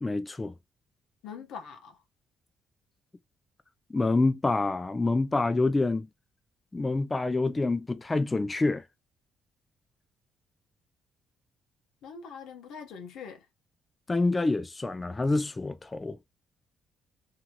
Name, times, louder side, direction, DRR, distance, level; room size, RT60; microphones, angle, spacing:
voice 1, 0.0-0.5 3.9-6.1 6.7-8.8 14.1-16.2, left 3 dB, 20° left, 0.4 m, -27 dB
voice 2, 1.2-2.0 12.0-13.5, left 6 dB, 85° left, 0.9 m, -43 dB
2.8 x 2.8 x 2.2 m
cardioid pair, 90°, 0 cm